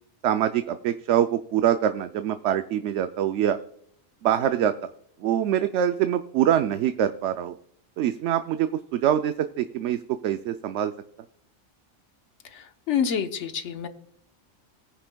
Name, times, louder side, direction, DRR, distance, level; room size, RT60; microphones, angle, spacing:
voice 1, 0.2-3.6 4.2-4.9 5.2-7.5 8.0-10.9, right 10 dB, 75° right, 9 dB, 0.9 m, -24 dB
voice 2, 12.9-13.9, left 7 dB, 75° left, 7 dB, 1.3 m, -26 dB
18.5 x 9.6 x 2.3 m, 0.68 s
omnidirectional pair, 1.2 m